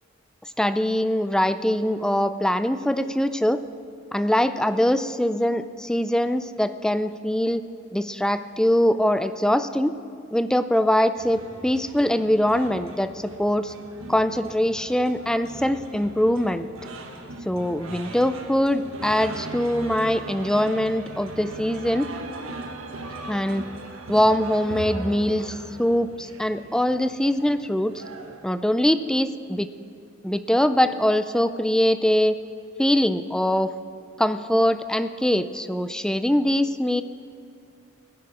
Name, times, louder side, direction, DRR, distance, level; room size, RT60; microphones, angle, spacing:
voice 1, 0.6-3.6 4.1-7.6 7.9-9.9 10.3-13.7 14.1-16.7 17.4-22.1 23.3-23.7 24.1-28.0 28.4-29.7 30.2-32.4 32.8-33.7 34.2-37.0, equal, 5° left, 11 dB, 0.4 m, -22 dB
sound 1, 11.2-28.6, right 2 dB, 90° right, 1.4 m, -39 dB
17.5 x 10.5 x 5.0 m, 2.6 s
head